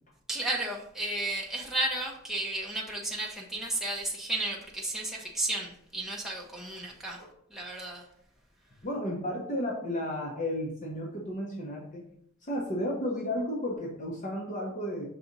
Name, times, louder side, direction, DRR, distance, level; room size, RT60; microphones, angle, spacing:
voice 1, 0.3-7.2 7.5-8.1, right 2 dB, ahead, -2 dB, 0.7 m, -33 dB
voice 2, 8.8-12.1 12.4-15.1, left 1 dB, 35° left, -2 dB, 1.0 m, -33 dB
5.9 x 4.1 x 3.9 m, 0.69 s
head